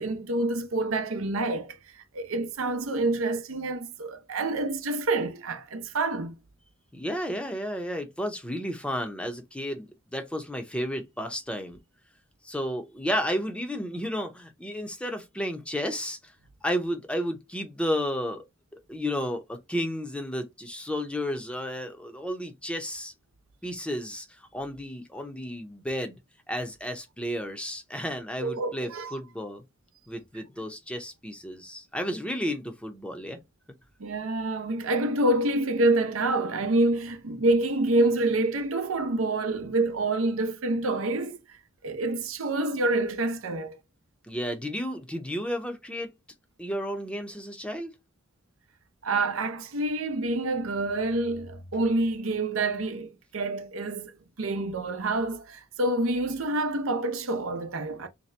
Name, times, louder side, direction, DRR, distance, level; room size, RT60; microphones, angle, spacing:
voice 1, 0.0-6.3 28.4-29.2 30.3-30.4 34.0-41.4 41.8-43.8 49.0-54.1 54.4-58.1, right 2 dB, 80° right, 0.7 m, -27 dB
voice 2, 6.9-11.8 12.4-16.3 16.6-18.4 18.9-23.1 23.6-26.2 26.5-29.6 30.1-33.4 44.3-46.1 46.6-47.9, equal, 5° left, 0.6 m, -32 dB
3.3 x 2.8 x 3.2 m
head